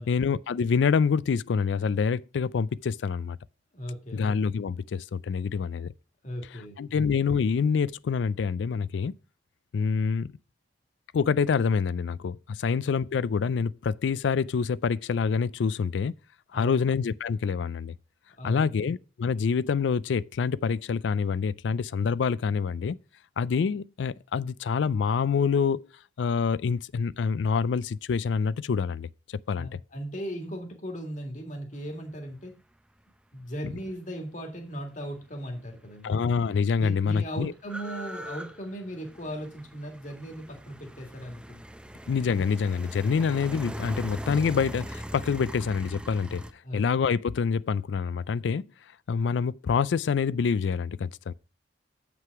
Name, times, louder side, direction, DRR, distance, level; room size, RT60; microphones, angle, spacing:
voice 1, 0.1-3.4 4.1-5.9 6.5-9.1 9.7-10.3 11.1-16.1 16.5-18.0 18.4-23.0 23.4-25.9 26.2-29.1 29.5-29.8 36.0-37.5 42.1-46.4 46.7-48.7 49.1-51.3, left 6 dB, 75° left, 0.4 m, -26 dB
voice 2, 3.7-4.3 6.2-6.8 12.6-12.8 16.5-16.9 18.4-18.9 29.6-32.5 33.3-36.2 36.8-41.6 46.6-46.8, equal, 45° left, 1.9 m, -37 dB
sound 1, 35.8-35.9 36.1-46.5, equal, 5° right, 0.6 m, -40 dB
7.7 x 6.0 x 4.6 m
head